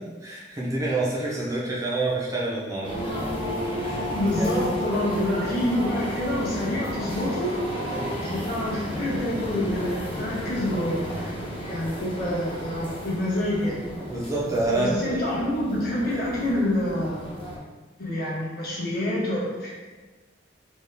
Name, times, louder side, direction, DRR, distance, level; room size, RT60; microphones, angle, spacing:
voice 1, 0.2-3.3 3.8-4.5 7.9-8.0 14.1-14.9, right 2 dB, 15° right, -5 dB, 0.5 m, -28 dB
sound 1, 2.8-17.6, equal, 30° left, 0.8 m, -33 dB
voice 2, 4.1-7.5 7.8-7.9 8.2-11.3 11.7-13.8 14.8-17.4 18.0-19.7, left 1 dB, 55° left, -8 dB, 1.4 m, -27 dB
4.3 x 2.3 x 3.3 m, 1.3 s
head